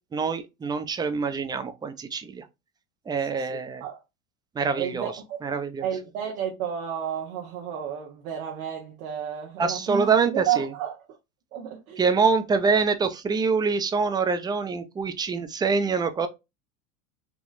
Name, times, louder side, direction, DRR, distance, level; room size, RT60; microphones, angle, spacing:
voice 1, 0.1-2.4 3.1-3.8 4.6-5.1 5.4-5.9 9.6-10.7 12.0-16.3, right 5 dB, 10° right, 0.3 m, -25 dB
voice 2, 3.2-4.0 4.7-5.6 5.8-11.1 11.5-12.0, right 9 dB, 70° right, 1.1 m, -32 dB
4.0 x 2.9 x 2.5 m
hypercardioid pair, 90°, 43 cm